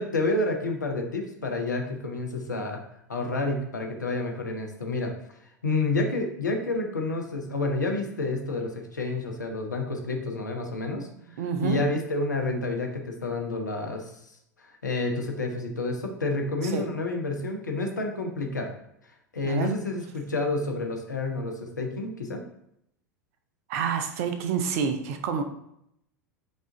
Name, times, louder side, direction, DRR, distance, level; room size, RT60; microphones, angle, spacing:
voice 1, 0.0-2.8 3.1-5.4 5.6-11.1 11.6-14.1 14.6-18.7 19.3-22.4, left 2 dB, 80° left, 3 dB, 0.7 m, -29 dB
voice 2, 11.4-11.8 16.6-16.9 19.4-19.7 23.7-25.4, right 6 dB, 55° right, 7 dB, 0.6 m, -28 dB
5.3 x 2.5 x 3.7 m, 0.75 s
figure-of-eight pair, 85°, 10 cm